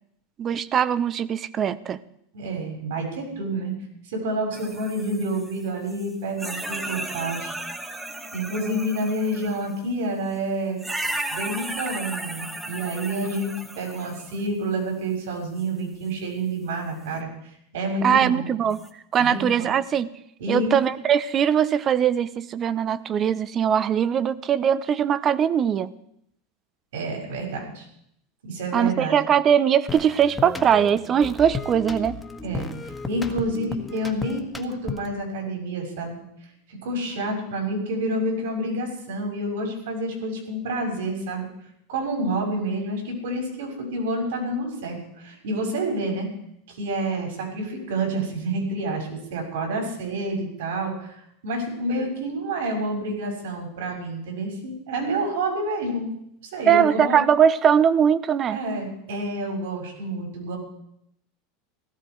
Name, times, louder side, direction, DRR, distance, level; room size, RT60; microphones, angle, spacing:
voice 1, 0.4-2.0 18.0-18.8 19.1-20.1 20.5-25.9 28.7-32.2 56.7-58.6, right 8 dB, 35° right, 17 dB, 0.8 m, -21 dB
voice 2, 2.3-3.7 4.1-7.5 8.3-10.8 11.3-17.3 17.7-18.5 19.2-19.7 20.4-20.7 26.9-27.8 28.4-29.2 32.4-36.2 36.8-41.4 41.9-46.3 46.7-51.2 51.4-56.1 56.5-57.2 58.5-60.6, right 1 dB, 80° right, 1 dB, 6.4 m, -28 dB
sound 1, 4.5-6.1 6.4-9.8 10.8-14.5 15.6-15.7 18.7-18.9, right 1 dB, 10° right, 1.8 m, -34 dB
sound 2, 29.9-35.2, left 4 dB, 10° left, 1.7 m, -34 dB
16.5 x 14.0 x 4.7 m, 0.74 s
hypercardioid pair, 100°, 0 cm